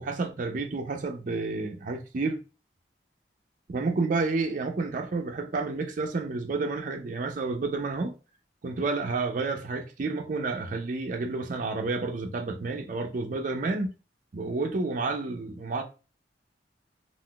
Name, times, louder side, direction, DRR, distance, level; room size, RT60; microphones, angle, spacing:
voice 1, 0.0-2.4 3.7-8.1 8.6-13.9 14.3-15.8, right 3 dB, 45° right, 0.4 m, -30 dB
3.7 x 2.4 x 2.2 m
head